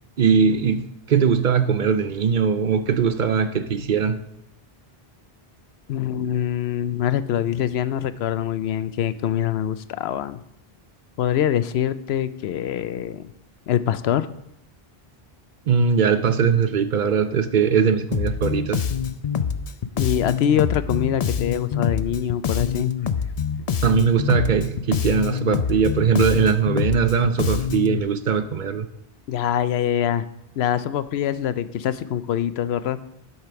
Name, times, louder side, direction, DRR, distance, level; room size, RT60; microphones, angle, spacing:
voice 1, 0.2-4.2 15.7-18.8 23.8-28.9, right 6 dB, 55° right, 11 dB, 0.7 m, -20 dB
voice 2, 5.9-10.4 11.2-13.3 13.7-14.3 20.0-23.0 29.3-30.3 30.6-33.0, left 10 dB, 80° left, 14 dB, 0.8 m, -24 dB
Bass guitar, 18.1-28.0, left 7 dB, 50° left, 0.5 m, -25 dB
8.2 x 7.5 x 5.9 m, 0.80 s
omnidirectional pair, 1.0 m